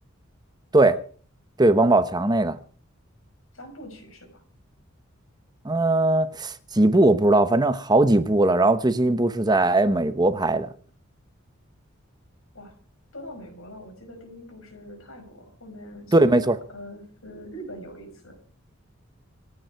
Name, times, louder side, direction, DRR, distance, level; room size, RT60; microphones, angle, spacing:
voice 1, 1.6-2.6 5.6-10.7 16.1-16.6, right 2 dB, 20° right, 0.9 m, -19 dB
voice 2, 3.5-4.4 12.5-12.7 13.1-16.3 16.7-18.4, equal, 85° left, 5.7 m, -42 dB
27.0 x 9.2 x 4.6 m
head